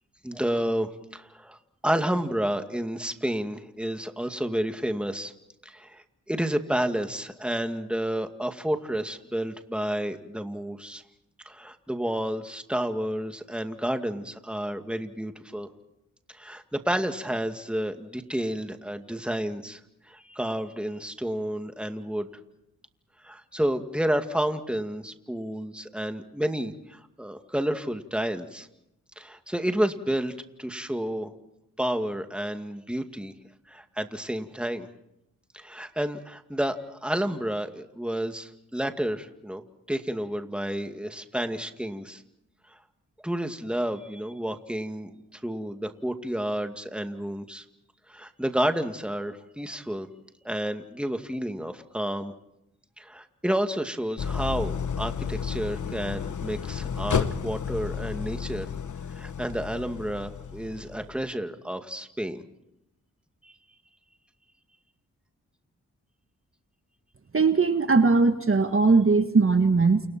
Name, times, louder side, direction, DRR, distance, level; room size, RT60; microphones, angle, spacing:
voice 1, 0.2-5.3 5.7-11.0 11.4-15.7 16.3-19.8 20.1-22.3 23.2-28.7 29.2-31.4 31.8-33.3 33.7-34.9 35.5-39.6 39.9-42.2 42.7-42.8 43.2-47.6 48.1-50.1 50.4-52.3 53.0-58.7 59.1-62.4 63.4-63.5, right 1 dB, 5° right, 6 dB, 2.2 m, -30 dB
Idling, 54.2-61.2, left 7 dB, 60° left, 1.1 m, -32 dB
voice 2, 67.3-70.1, right 4 dB, 40° right, 7 dB, 1.6 m, -20 dB
29.5 x 29.0 x 4.4 m, 0.83 s
cardioid pair, 55°, 34 cm